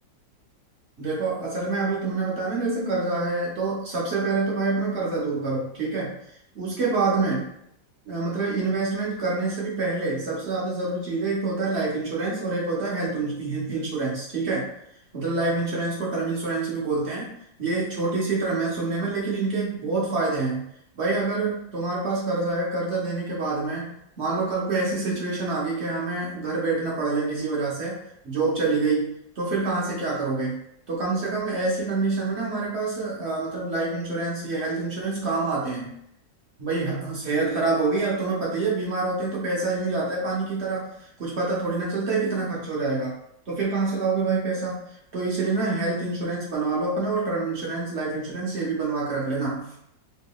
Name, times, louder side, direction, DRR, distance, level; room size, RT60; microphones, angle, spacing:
voice 1, 1.0-6.2 6.5-7.5 8.1-14.7 15.1-17.3 17.6-20.7 21.0-23.9 24.2-28.0 28.2-30.6 30.9-35.9 36.6-43.1 43.5-44.8 45.1-49.7, right 3 dB, 50° right, -5 dB, 0.9 m, -26 dB
3.7 x 3.3 x 2.3 m, 0.75 s
omnidirectional pair, 2.0 m